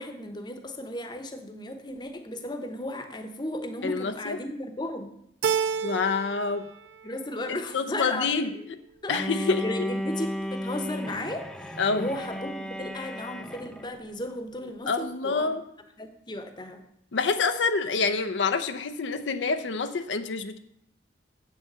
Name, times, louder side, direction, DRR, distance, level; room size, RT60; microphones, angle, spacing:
voice 1, 0.0-5.1 7.0-8.6 9.0-15.5 16.0-16.8 18.0-18.1, left 1 dB, 25° left, 7 dB, 0.9 m, -35 dB
voice 2, 3.8-4.4 5.8-6.7 7.5-8.8 9.1-9.9 11.8-12.1 14.9-15.6 17.1-20.6, left 4 dB, 80° left, 8 dB, 0.6 m, -27 dB
Keyboard (musical), 5.4-6.5 6.8-7.6, right 6 dB, 75° right, 0.4 m, -29 dB
Bowed string instrument, 9.1-14.0, equal, 5° left, 0.5 m, -34 dB
7.8 x 6.5 x 7.4 m, 0.74 s
head